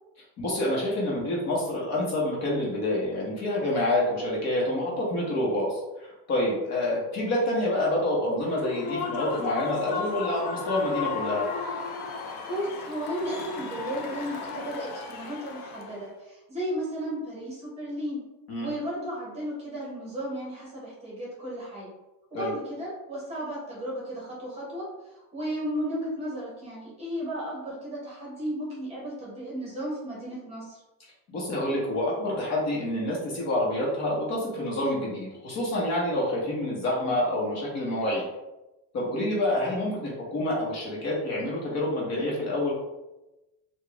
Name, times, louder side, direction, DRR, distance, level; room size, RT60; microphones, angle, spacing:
voice 1, 0.4-11.5 18.5-18.7 22.3-22.5 31.3-38.2 38.9-42.7, left 1 dB, 45° left, -4 dB, 1.1 m, -27 dB
Human voice / Cheering / Applause, 8.4-16.1, left 5 dB, 70° left, 0.7 m, -35 dB
voice 2, 12.5-18.2 18.6-21.9 22.3-30.8, equal, 15° right, -6 dB, 1.3 m, -34 dB
4.0 x 2.4 x 3.3 m, 1.0 s
cardioid pair, 175°, 37 cm